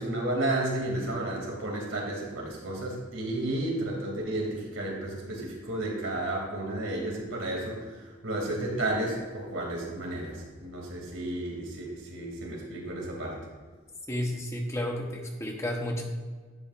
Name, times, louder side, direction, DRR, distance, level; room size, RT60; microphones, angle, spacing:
voice 1, 0.0-13.4, right 1 dB, 85° right, -1 dB, 2.7 m, -32 dB
voice 2, 14.1-16.0, left 1 dB, 15° left, 1 dB, 1.0 m, -32 dB
11.0 x 8.5 x 2.5 m, 1.4 s
head